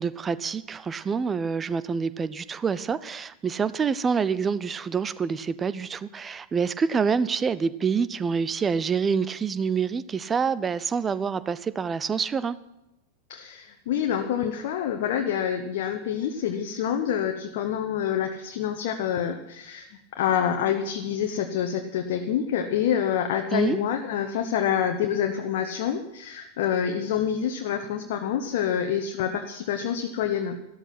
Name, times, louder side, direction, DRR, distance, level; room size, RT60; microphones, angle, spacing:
voice 1, 0.0-12.6 23.5-23.8, right 6 dB, 20° right, 17 dB, 0.7 m, -27 dB
voice 2, 13.3-30.6, left 9 dB, 50° left, 5 dB, 1.1 m, -27 dB
13.0 x 13.0 x 5.9 m, 0.91 s
figure-of-eight pair, 90°, 0 cm